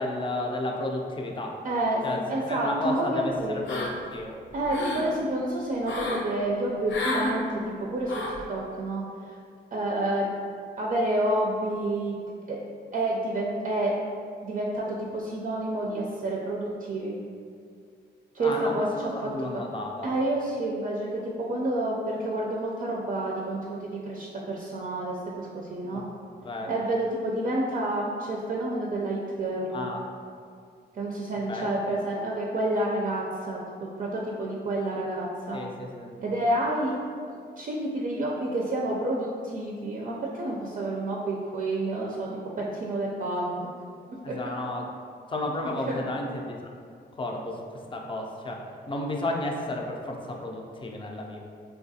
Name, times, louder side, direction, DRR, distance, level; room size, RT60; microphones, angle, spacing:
voice 1, 0.0-1.6 2.0-2.2 2.5-4.3 18.4-20.1 25.9-26.0 26.4-26.7 29.7-30.1 31.5-31.7 35.5-36.1 44.2-44.9 45.3-46.7 47.2-47.6 47.9-51.4, left 1 dB, 25° left, 0 dB, 0.4 m, -32 dB
voice 2, 1.6-3.6 4.5-8.1 8.5-9.4 9.7-10.3 10.8-12.2 12.5-12.6 12.9-14.0 14.4-17.2 18.3-19.6 20.0-26.1 26.7-29.8 30.9-35.6 36.2-36.9 37.3-42.3 42.6-43.7 44.3-44.4 45.6-46.0, right 1 dB, 45° right, -3 dB, 0.4 m, -29 dB
sound 1, 3.7-4.2 4.5-5.1 5.8-6.3 6.9-7.3 8.1-8.4, left 2 dB, 80° left, 0.5 m, -31 dB
3.2 x 2.3 x 2.7 m, 2.2 s
cardioid pair, 75°, 19 cm